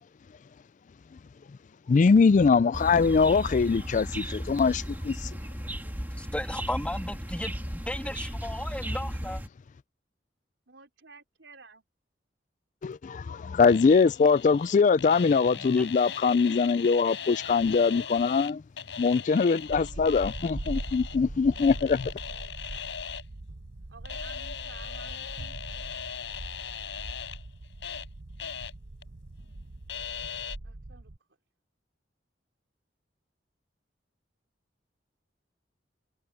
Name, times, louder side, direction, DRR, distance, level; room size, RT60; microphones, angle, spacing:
voice 1, 1.9-5.3 12.8-18.6 19.0-22.1, left 5 dB, 45° left, 0.3 m, -22 dB
sound 1, 2.7-9.5, equal, 10° right, 2.2 m, -35 dB
voice 2, 6.2-9.4 15.5-15.9, left 1 dB, 5° left, 2.7 m, -35 dB
voice 3, 10.7-11.8 13.8-14.3 19.1-20.1 22.2-22.8 23.9-25.6 30.6-31.1, right 4 dB, 80° right, 4.3 m, -54 dB
sound 2, 13.7-18.5 18.8-21.2 21.5-23.2 24.0-28.1 28.4-28.7 29.0-29.1 29.9-30.6, left 8 dB, 85° left, 4.2 m, -39 dB
sound 3, 19.7-31.2, right 2 dB, 55° right, 0.9 m, -41 dB
head